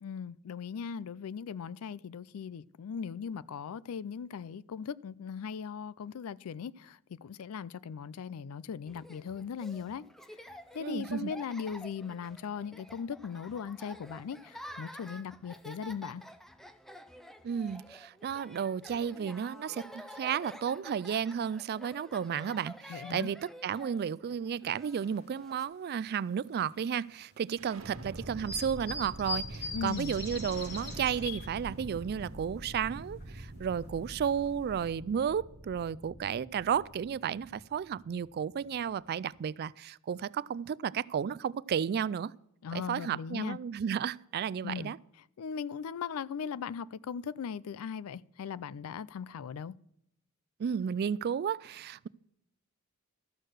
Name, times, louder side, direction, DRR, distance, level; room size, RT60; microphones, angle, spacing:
voice 1, 0.0-10.0 10.7-16.2 22.9-23.3 29.7-30.1 42.6-43.6 44.6-44.9 45.4-49.7, left 6 dB, 80° left, 0.4 m, -39 dB
Laughter, 8.9-25.6, equal, ahead, 0.6 m, -50 dB
voice 2, 10.8-11.3 17.4-42.3 42.7-45.0 50.6-52.1, right 7 dB, 45° right, 0.3 m, -33 dB
sound 1, 25.0-25.3 25.8-25.9 26.9-27.0 28.4-31.6 32.0-32.1 32.4-32.5 33.0-33.2 33.8-33.9 34.2-34.5 34.9-35.0, left 3 dB, 50° left, 3.4 m, -40 dB
sound 2, 27.6-39.4, right 1 dB, 70° right, 1.4 m, -46 dB
13.0 x 6.6 x 6.3 m
head